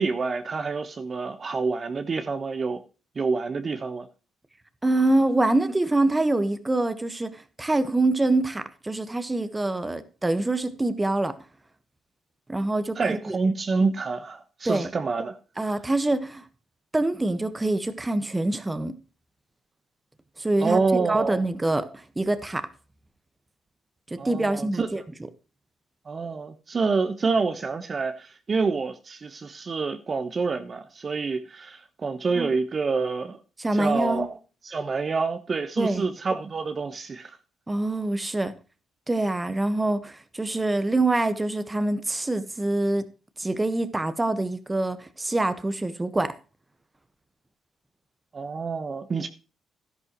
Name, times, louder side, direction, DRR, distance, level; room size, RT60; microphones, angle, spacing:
voice 1, 0.0-2.8 3.1-4.1 13.0-15.4 20.6-21.4 24.2-25.0 26.0-33.4 33.7-34.4 34.6-37.4 48.3-49.3, right 4 dB, 40° right, 1.2 m, -27 dB
voice 2, 4.8-11.4 12.5-13.3 14.6-14.9 15.6-16.5 16.9-18.9 20.4-20.8 21.1-22.7 24.1-25.0 32.3-32.5 33.6-34.3 35.8-36.1 37.7-38.5 39.1-43.0 43.4-46.3, right 2 dB, 15° right, 1.4 m, -25 dB
12.0 x 11.0 x 3.1 m
cardioid pair, 75°, 0 cm